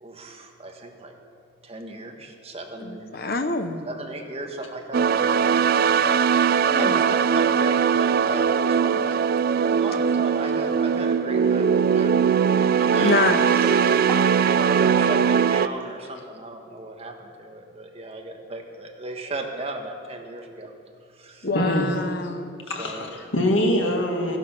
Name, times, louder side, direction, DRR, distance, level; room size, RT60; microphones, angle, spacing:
voice 1, 0.0-1.1 1.6-3.1 3.8-9.0 9.5-12.1 12.8-13.3 13.8-20.7 21.1-21.5 22.7-23.1, right 2 dB, 30° right, 2 dB, 1.4 m, -35 dB
voice 2, 2.8-3.8 6.7-6.9 8.9-9.0 13.0-13.4 21.4-22.5, left 3 dB, 50° left, 8 dB, 1.0 m, -26 dB
sound 1, 4.9-15.7, right 7 dB, 50° right, 0.3 m, -20 dB
Water, 12.8-15.8, equal, 10° left, 2.1 m, -36 dB
voice 3, 21.5-21.9 22.7-24.4, left 1 dB, 80° left, 2 dB, 2.0 m, -23 dB
14.5 x 11.0 x 6.0 m, 2.4 s
head